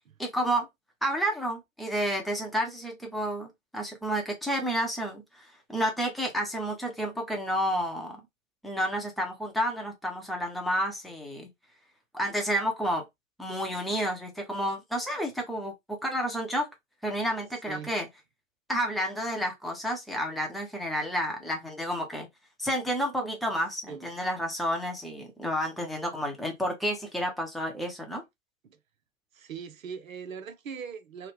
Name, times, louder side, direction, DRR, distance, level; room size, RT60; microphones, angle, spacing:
voice 1, 0.2-0.7 1.0-8.2 8.6-11.5 12.1-13.0 13.4-16.7 17.0-18.1 18.7-22.3 22.6-28.2, equal, ahead, 0.7 m, -30 dB
voice 2, 29.3-31.3, right 6 dB, 75° right, 0.8 m, -40 dB
3.2 x 2.2 x 3.2 m
hypercardioid pair, 110°, 41 cm